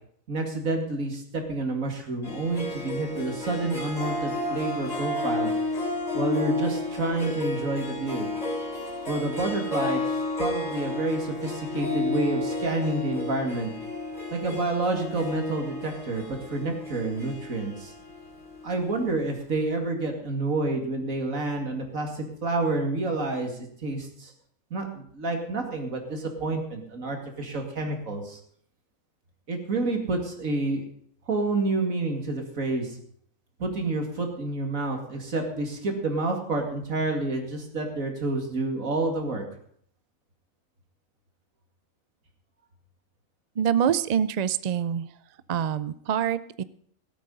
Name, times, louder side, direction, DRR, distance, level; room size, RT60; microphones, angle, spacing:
voice 1, 0.3-5.5 6.1-8.3 9.1-10.0 10.4-13.7 14.3-16.2 16.5-17.9 18.6-24.3 24.7-28.4 29.5-30.9 31.3-33.0 33.6-39.4, right 2 dB, 80° right, 3 dB, 2.7 m, -29 dB
Harp, 2.2-19.0, left 2 dB, 30° left, 3.6 m, -32 dB
voice 2, 43.6-45.1 45.5-46.6, right 9 dB, 60° right, 15 dB, 0.4 m, -25 dB
17.0 x 8.6 x 5.4 m, 0.64 s
omnidirectional pair, 1.4 m